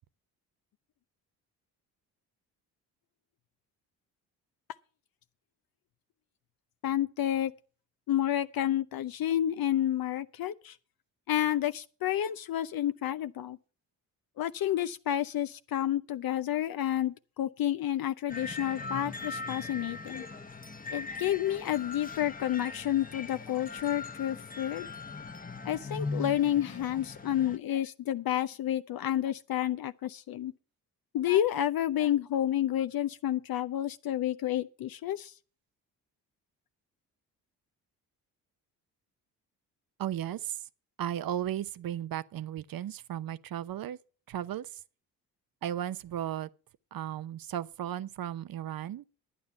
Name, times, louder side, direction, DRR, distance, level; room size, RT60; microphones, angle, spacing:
voice 1, 6.8-7.5 8.1-10.8 11.3-13.6 14.4-20.2 20.9-24.9 25.6-30.5 31.1-35.3, left 11 dB, 50° left, 0.7 m, -30 dB
sound 1, 18.3-27.6, left 3 dB, 20° left, 1.1 m, -40 dB
voice 2, 40.0-40.7 41.0-44.0 44.3-44.8 45.6-46.5 46.9-49.1, right 11 dB, 50° right, 0.8 m, -35 dB
11.5 x 9.4 x 5.7 m
hypercardioid pair, 50°, 45 cm